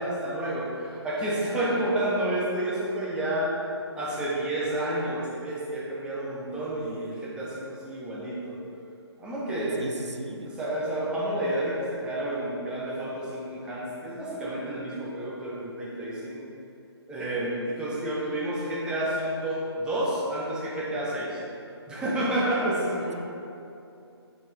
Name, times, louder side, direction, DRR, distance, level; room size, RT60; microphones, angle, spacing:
voice 1, 0.0-3.5 3.9-8.6 9.2-9.8 10.4-16.4 17.1-21.4 21.9-23.1, right 1 dB, 5° right, -7 dB, 0.8 m, -30 dB
voice 2, 9.8-10.5, right 2 dB, 85° right, 4 dB, 0.7 m, -36 dB
6.5 x 5.3 x 3.5 m, 2.7 s
figure-of-eight pair, 140°, 14 cm